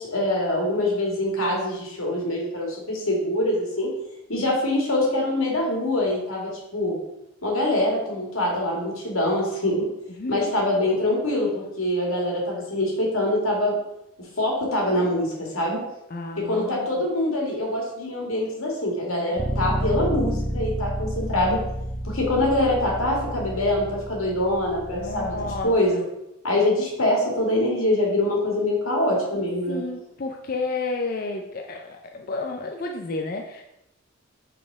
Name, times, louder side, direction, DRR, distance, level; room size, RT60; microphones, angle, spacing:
voice 1, 0.0-3.9 4.3-7.0 7.4-9.8 10.3-13.7 14.4-15.8 16.4-21.6 22.1-25.3 25.6-26.0 26.4-29.8, left 1 dB, 90° left, -2 dB, 2.2 m, -24 dB
voice 2, 10.2-10.5 16.1-16.9 24.9-26.1 29.7-33.6, left 3 dB, 45° left, 3 dB, 0.5 m, -31 dB
Bass guitar, 19.4-25.6, right 1 dB, 20° right, 0.6 m, -30 dB
5.4 x 4.3 x 4.7 m, 0.87 s
head